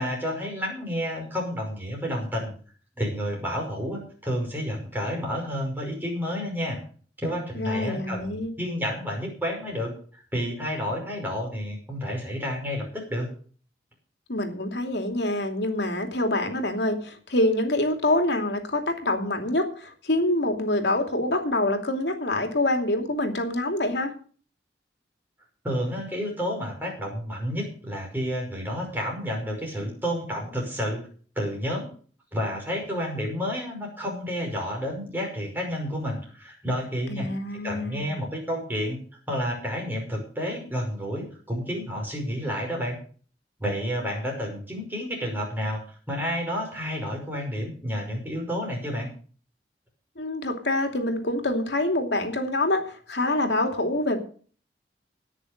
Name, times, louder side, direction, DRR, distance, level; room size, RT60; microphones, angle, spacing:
voice 1, 0.0-2.5 3.0-6.8 7.2-13.3 25.6-31.0 31.4-31.9 32.3-37.3 37.6-39.0 39.3-43.0 43.6-49.1, equal, 10° right, 0 dB, 5.4 m, -30 dB
voice 2, 7.5-8.6 14.3-24.1 37.1-38.1 50.2-54.2, left 1 dB, 80° left, 5 dB, 2.7 m, -26 dB
18.0 x 6.6 x 6.6 m, 0.43 s
head